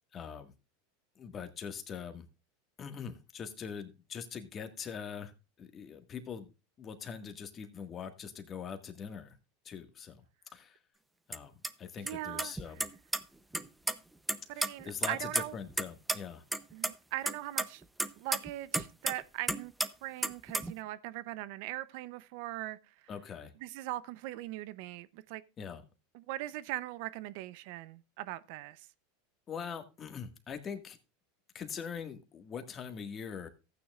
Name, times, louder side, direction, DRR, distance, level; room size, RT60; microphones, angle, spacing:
voice 1, 0.1-0.5 1.1-2.2 2.8-5.3 5.6-6.5 6.8-9.4 9.6-10.2 10.5-10.8 11.3-11.5 11.8-12.8 14.5-16.4 23.1-23.5 25.6-25.8 29.5-31.0 31.5-33.5, left 7 dB, 30° left, 1.7 m, -42 dB
sound 1, 11.3-11.4 11.6-11.7 12.1-12.2 12.4-13.2 13.5-13.9 14.3-15.8 16.1-16.2 16.5-16.9 17.3-19.2 19.5-19.9 20.2-20.7, right 2 dB, 5° right, 0.7 m, -32 dB
voice 2, 12.0-12.5 14.5-15.6 16.7-17.8 18.1-19.7 20.0-22.9 23.6-25.4 26.1-28.9, right 16 dB, 65° right, 0.6 m, -40 dB
14.5 x 9.3 x 2.4 m
supercardioid pair, 115°, 0 cm